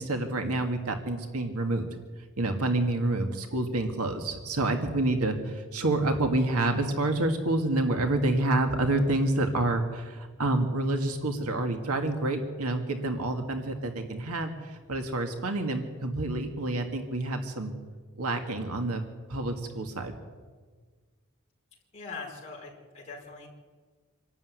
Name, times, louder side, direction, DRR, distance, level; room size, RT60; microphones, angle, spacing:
voice 1, 0.0-1.9 2.4-17.7 18.2-19.0 19.3-20.1, right 2 dB, 85° right, 5 dB, 2.0 m, -28 dB
voice 2, 21.9-23.5, left 4 dB, 30° left, -5 dB, 5.3 m, -41 dB
26.0 x 12.5 x 9.5 m, 1.5 s
head